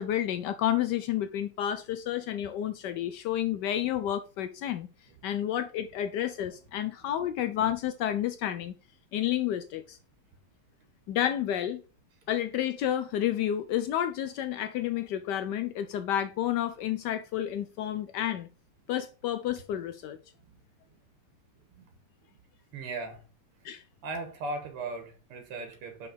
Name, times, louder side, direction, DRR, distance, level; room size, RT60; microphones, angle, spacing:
voice 1, 0.0-4.9 5.2-8.7 9.1-10.0 11.1-11.8 12.3-18.5 18.9-20.2 23.6-23.8, left 11 dB, 90° left, 0.9 m, -30 dB
voice 2, 22.7-23.2 24.0-26.1, right 2 dB, 85° right, 2.3 m, -37 dB
5.6 x 4.9 x 5.0 m
omnidirectional pair, 2.4 m